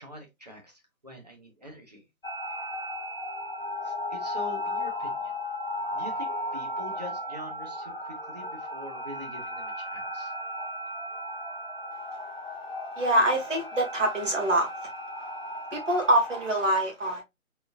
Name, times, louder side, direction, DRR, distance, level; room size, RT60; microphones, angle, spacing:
voice 1, 0.0-2.0 3.8-5.3 5.9-10.3, equal, 30° right, 1.1 m, -44 dB
sound 1, 2.2-16.6, left 1 dB, 45° left, 0.5 m, -35 dB
voice 2, 13.0-14.9 15.7-17.2, right 1 dB, 60° right, 2.5 m, -25 dB
4.1 x 3.7 x 2.6 m
hypercardioid pair, 175°, 42 cm